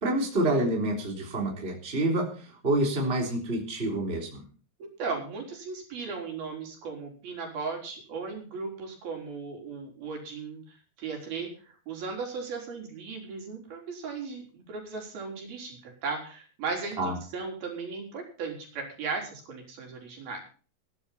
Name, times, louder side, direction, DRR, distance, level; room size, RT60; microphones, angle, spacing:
voice 1, 0.0-4.4 17.0-17.1, right 1 dB, 15° right, 0 dB, 3.4 m, -28 dB
voice 2, 4.8-20.4, right 4 dB, 65° right, 1 dB, 5.7 m, -37 dB
16.0 x 12.5 x 4.3 m, 0.39 s
omnidirectional pair, 4.6 m